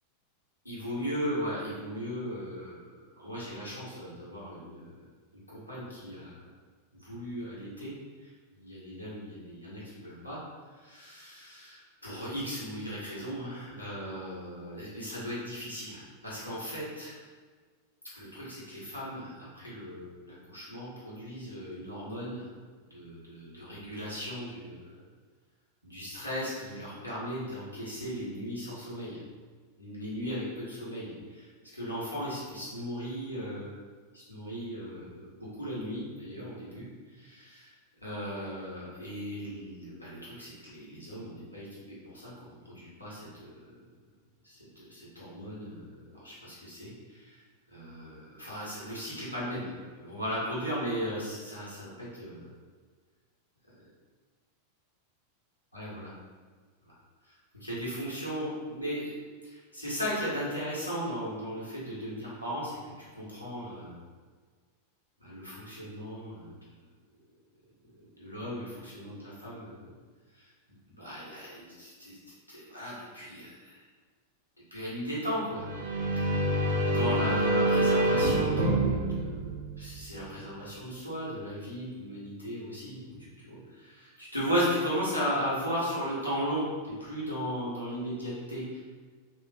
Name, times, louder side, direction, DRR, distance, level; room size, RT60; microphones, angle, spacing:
voice 1, 0.6-2.8 3.2-5.0 5.5-6.4 7.0-7.9 8.2-10.4 10.8-17.1 18.1-22.4 22.9-25.0 25.8-29.2 29.8-31.5 31.7-33.7 34.1-36.9 37.2-37.7 38.0-43.7 44.4-47.4 47.7-49.7 50.0-52.5 55.7-56.1 56.8-56.9 57.6-59.1 59.4-62.8 63.1-64.0 65.2-66.5 68.2-69.8 70.4-70.5 71.0-73.8 74.7-75.7 76.2-76.5 76.8-83.0 83.4-88.8, equal, 90° left, -8 dB, 1.3 m, -36 dB
sound 1, 75.5-80.3, right 1 dB, 65° right, 0.7 m, -27 dB
3.2 x 2.9 x 3.5 m, 1.5 s
figure-of-eight pair, 90°, 0 cm